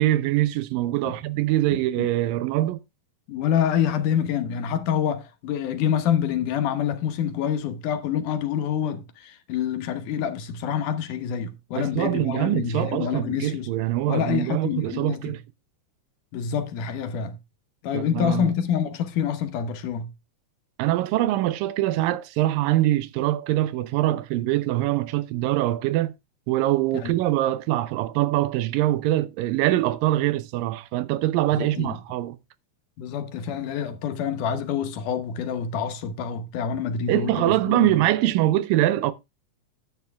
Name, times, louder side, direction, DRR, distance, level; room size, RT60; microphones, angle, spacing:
voice 1, 0.0-2.8 11.8-15.4 17.9-18.5 20.8-26.1 26.5-32.4 37.1-39.1, right 15 dB, 90° right, 2.5 m, -23 dB
voice 2, 1.7-2.1 3.3-13.7 14.1-15.4 16.3-17.4 17.8-20.1 27.0-27.2 31.5-32.0 33.0-37.9, left 8 dB, 75° left, 2.5 m, -27 dB
11.0 x 8.2 x 3.4 m
omnidirectional pair, 3.9 m